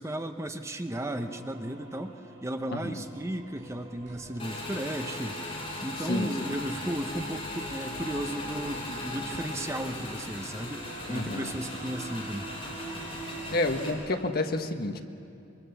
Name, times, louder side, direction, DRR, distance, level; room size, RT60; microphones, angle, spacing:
voice 1, 0.0-2.1 2.4-5.4 5.8-12.5, right 1 dB, 15° right, 7 dB, 0.8 m, -35 dB
sound 1, 0.9-14.4, equal, 50° right, 7.2 m, -52 dB
voice 2, 2.7-3.0 6.1-6.5 11.1-11.5 13.5-15.0, left 2 dB, 50° left, 5 dB, 1.4 m, -30 dB
sound 2, 2.8-13.9, right 2 dB, 90° right, 5.5 m, -50 dB
Motorcycle / Engine, 4.4-13.9, left 1 dB, 25° left, 4.9 m, -38 dB
26.0 x 23.5 x 7.0 m, 2.5 s
head